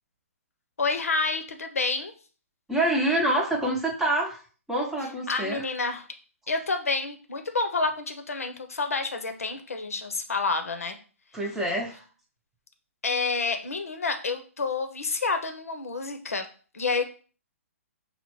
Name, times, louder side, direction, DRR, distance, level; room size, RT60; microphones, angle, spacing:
voice 1, 0.8-2.1 5.3-6.1 6.5-11.0 13.0-16.5 16.7-17.0, left 4 dB, 75° left, 6 dB, 0.7 m, -29 dB
voice 2, 2.7-4.4 4.7-5.7 11.3-12.0, right 1 dB, 5° right, -1 dB, 0.7 m, -26 dB
5.7 x 2.1 x 3.0 m, 0.39 s
figure-of-eight pair, 125°, 8 cm